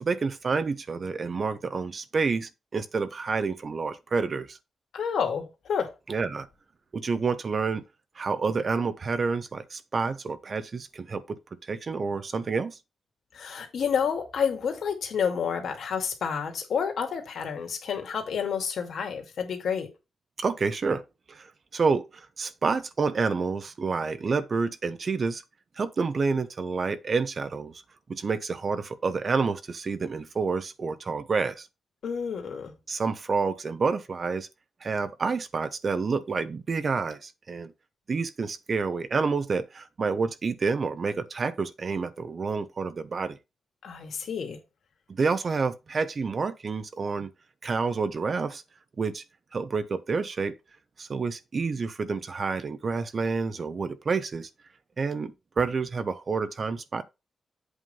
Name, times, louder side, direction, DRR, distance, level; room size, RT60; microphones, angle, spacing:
voice 1, 0.0-4.6 6.1-6.5 6.9-7.8 8.2-12.8 20.4-21.0 21.3-25.4 25.8-27.8 28.1-31.7 32.9-34.5 34.8-37.7 38.1-43.4 45.1-47.3 47.6-48.6 49.0-49.2 49.5-50.5 51.0-54.5 55.0-57.0, right 4 dB, 55° right, 0.9 m, -29 dB
voice 2, 4.9-5.9 13.3-19.9 32.0-32.7 43.8-44.6, left 7 dB, 75° left, 2.3 m, -29 dB
8.1 x 3.6 x 5.6 m
cardioid pair, 65°, 0 cm